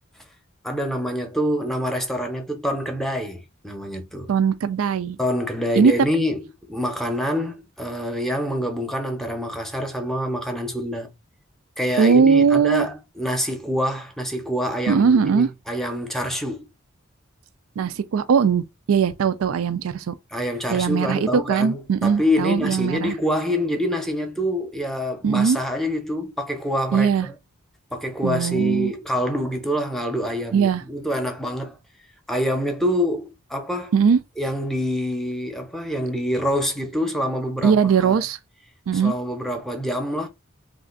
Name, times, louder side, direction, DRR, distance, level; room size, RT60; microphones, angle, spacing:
voice 1, 0.6-4.3 5.2-6.4 6.7-11.1 11.8-16.7 20.3-27.3 27.9-31.8 32.3-33.9 34.4-38.2 38.9-40.3, equal, ahead, 0.7 m, -26 dB
voice 2, 4.3-5.2 5.8-5.9 12.0-12.9 14.9-15.5 17.8-20.2 20.7-23.1 25.2-25.6 26.9-27.3 28.2-28.9 30.5-30.8 33.9-34.2 37.6-38.4 38.9-39.1, right 6 dB, 85° right, 0.4 m, -19 dB
3.2 x 2.4 x 3.8 m
head